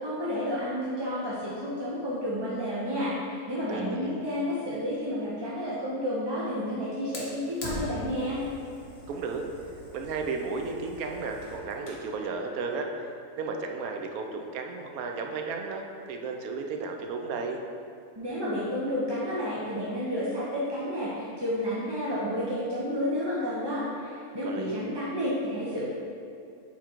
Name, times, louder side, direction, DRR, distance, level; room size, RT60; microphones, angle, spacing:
voice 1, 0.0-8.4 18.2-25.9, equal, 30° right, -8 dB, 0.5 m, -31 dB
voice 2, 3.7-4.1 9.1-9.4 9.9-13.1 13.4-17.6 24.4-24.8, right 4 dB, 75° right, 3 dB, 1.0 m, -34 dB
Fire, 7.1-12.1, left 1 dB, 90° left, 1.6 m, -42 dB
5.7 x 3.7 x 4.5 m, 2.6 s
omnidirectional pair, 1.6 m